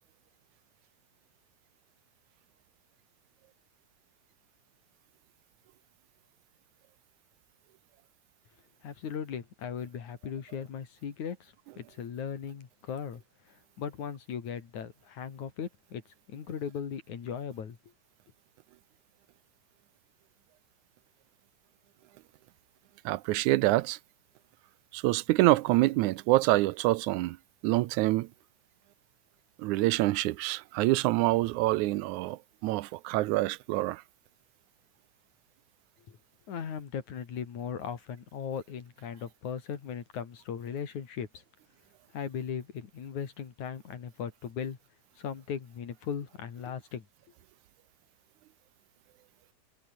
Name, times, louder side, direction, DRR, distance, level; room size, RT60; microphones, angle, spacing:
voice 1, 8.8-13.2 13.8-16.0 16.3-17.8 36.1-36.2 36.5-41.4 42.1-44.8 45.2-47.1, left 7 dB, 75° left, 4.1 m, -38 dB
voice 2, 23.1-24.0 24.9-27.4 27.6-28.3 29.6-34.0, right 18 dB, 85° right, 2.1 m, -26 dB
omnidirectional pair, 3.4 m